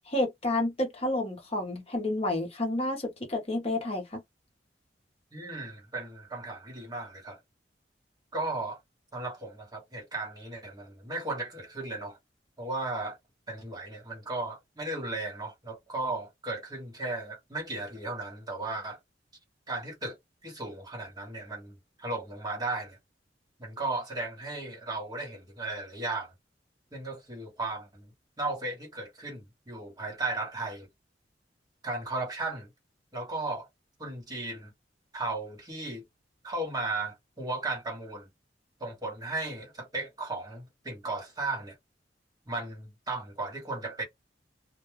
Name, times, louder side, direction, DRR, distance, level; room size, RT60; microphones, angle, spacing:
voice 1, 0.1-4.2, left 1 dB, 35° left, 0.8 m, -30 dB
voice 2, 5.3-7.4 8.3-8.8 9.1-12.2 12.6-13.2 13.5-19.0 19.7-20.2 20.4-23.0 23.6-26.3 26.9-28.1 28.4-30.9 31.8-32.7 33.1-33.7 34.0-34.7 35.1-36.0 36.4-38.3 38.8-41.8 42.5-44.0, right 2 dB, 20° right, 0.9 m, -35 dB
2.2 x 2.1 x 3.0 m
head